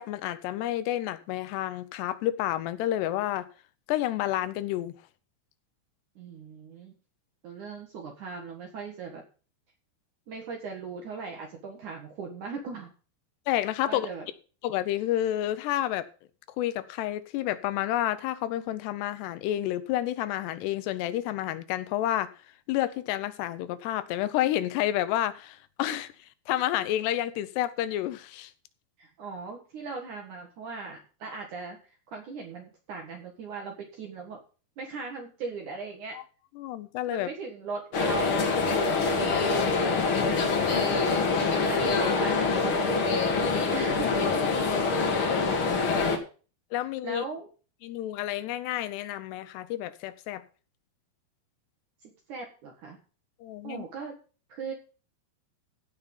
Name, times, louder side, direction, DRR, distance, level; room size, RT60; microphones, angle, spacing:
voice 1, 0.0-3.5 3.9-4.9 13.5-14.1 14.6-16.1 16.6-22.3 22.7-26.1 26.5-28.5 36.2-36.3 36.6-37.3 46.7-47.2 47.8-50.4 53.4-53.8, left 13 dB, 80° left, 2.8 m, -30 dB
voice 2, 6.2-6.9 7.4-9.2 10.3-12.9 13.8-14.3 29.0-34.4 34.8-36.2 37.1-43.2 43.7-44.4 45.8-46.2 47.0-47.5 52.0-53.0 53.6-54.2 54.5-54.7, right 4 dB, 55° right, 2.6 m, -39 dB
sound 1, 37.9-46.2, left 4 dB, 50° left, 1.6 m, -25 dB
15.5 x 5.7 x 5.4 m
omnidirectional pair, 4.9 m